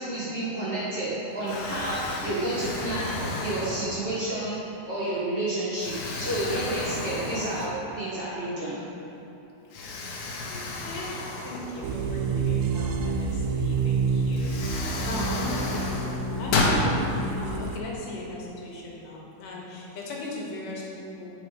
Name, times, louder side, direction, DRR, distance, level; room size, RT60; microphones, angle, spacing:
voice 1, 0.0-4.6 4.9-8.8, right 1 dB, 45° right, -10 dB, 1.7 m, -30 dB
Explosion, 0.8-1.1 1.5-4.3 4.9-5.1 5.8-8.0 8.4-8.5 9.7-12.4 13.8-13.9 14.3-16.8, left 3 dB, 70° left, 2.1 m, -32 dB
voice 2, 10.5-21.3, left 2 dB, 85° left, -3 dB, 2.8 m, -38 dB
sound 1, 11.8-17.8, right 4 dB, 80° right, 1.8 m, -28 dB
9.1 x 4.8 x 4.9 m, 2.9 s
omnidirectional pair, 3.7 m